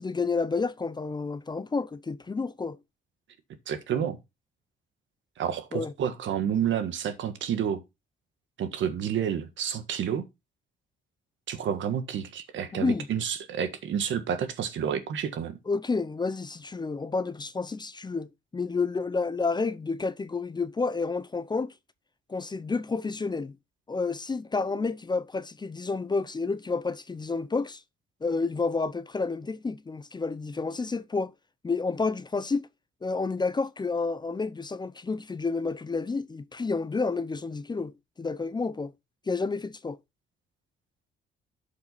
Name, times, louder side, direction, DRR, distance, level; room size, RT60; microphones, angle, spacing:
voice 1, 0.0-2.8 5.7-5.9 12.7-13.1 15.7-21.7 22.3-23.6 23.9-27.8 28.2-31.3 31.6-32.7 33.0-38.9 39.3-40.0, left 4 dB, 20° left, 0.6 m, -30 dB
voice 2, 3.7-4.2 5.4-7.8 8.6-10.3 11.5-15.6, right 8 dB, 70° right, 1.6 m, -29 dB
11.5 x 5.4 x 4.1 m
cardioid pair, 90°, 20 cm